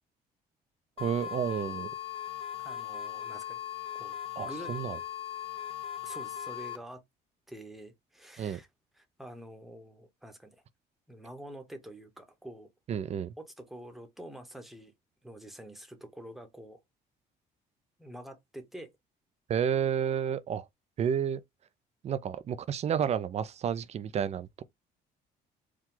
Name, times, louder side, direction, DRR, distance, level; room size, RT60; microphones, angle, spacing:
sound 1, 1.0-6.8, left 10 dB, 35° left, 0.6 m, -39 dB
voice 1, 1.0-1.9 4.4-5.0 8.4-8.6 12.9-13.3 19.5-20.7 21.0-21.4 22.0-24.6, right 8 dB, 40° right, 0.5 m, -31 dB
voice 2, 2.6-3.6 3.9-4.2 4.4-4.7 6.0-7.0 7.5-8.7 9.0-10.6 11.1-12.7 13.4-14.9 15.2-16.8 18.0-18.9, right 1 dB, ahead, 1.0 m, -47 dB
4.6 x 2.3 x 3.8 m
cardioid pair, 110°, 17 cm